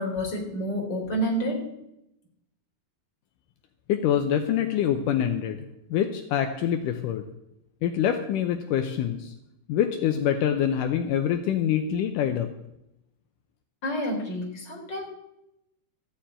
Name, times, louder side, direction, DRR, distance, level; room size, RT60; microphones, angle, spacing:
voice 1, 0.0-1.6 13.8-15.0, equal, 30° left, -1 dB, 3.9 m, -29 dB
voice 2, 3.9-5.6 5.9-7.2 7.8-9.3 9.7-12.5, left 9 dB, 80° left, 6 dB, 2.3 m, -25 dB
14.5 x 7.1 x 8.8 m, 0.86 s
omnidirectional pair, 3.9 m